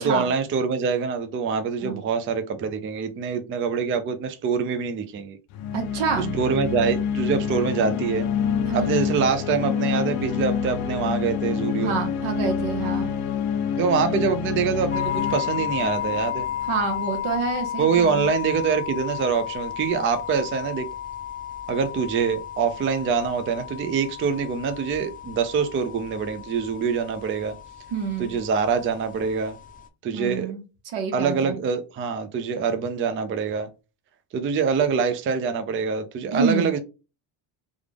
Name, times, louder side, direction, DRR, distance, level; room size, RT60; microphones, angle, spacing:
voice 1, 0.0-5.4 6.2-8.3 8.7-11.9 13.8-16.5 17.8-20.9 21.7-27.5 28.2-29.6 30.0-30.5 31.1-33.7 34.3-36.8, right 6 dB, 30° right, 0.4 m, -25 dB
sound 1, 5.5-17.1, left 7 dB, 85° left, 0.7 m, -27 dB
voice 2, 5.7-6.3 8.7-9.0 11.8-13.1 16.7-18.4 27.9-28.4 30.1-31.6 36.3-36.7, right 5 dB, 80° right, 1.4 m, -28 dB
sound 2, 14.9-29.9, left 10 dB, 20° left, 0.6 m, -33 dB
3.5 x 2.4 x 3.4 m
cardioid pair, 130°, 49 cm